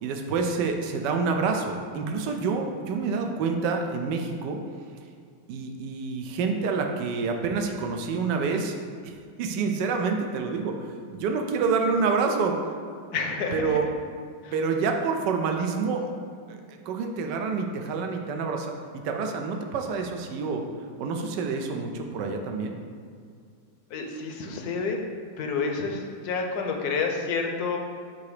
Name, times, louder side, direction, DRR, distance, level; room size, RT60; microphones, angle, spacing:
voice 1, 0.0-4.6 5.5-8.7 9.0-12.6 13.5-13.9 14.5-16.1 16.5-18.7 19.0-20.6 21.0-22.7, right 4 dB, 85° right, 4 dB, 1.3 m, -27 dB
voice 2, 13.1-13.6 14.4-14.5 23.9-25.0 25.4-27.8, left 4 dB, 70° left, 3 dB, 1.2 m, -29 dB
8.2 x 2.9 x 4.8 m, 2.1 s
omnidirectional pair, 1.8 m